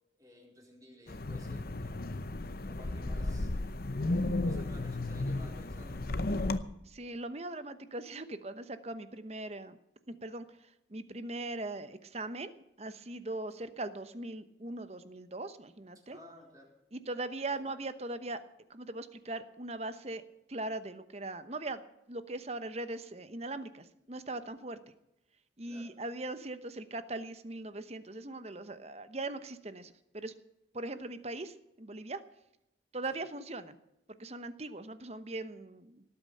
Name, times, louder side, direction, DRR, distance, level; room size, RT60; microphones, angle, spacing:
voice 1, 0.2-2.0 2.6-3.6 4.0-6.2 15.9-16.7 25.7-25.9 33.1-33.2, left 1 dB, 20° right, -1 dB, 4.2 m, -55 dB
Wind, 1.1-6.6, left 2 dB, 50° left, 0.8 m, -34 dB
voice 2, 6.8-9.8 10.1-16.2 16.9-18.4 18.7-20.2 20.5-21.8 22.1-24.8 25.6-30.3 30.7-32.2 32.9-33.8 34.1-36.0, right 2 dB, 35° right, 12 dB, 1.0 m, -40 dB
18.5 x 8.6 x 7.7 m, 0.84 s
head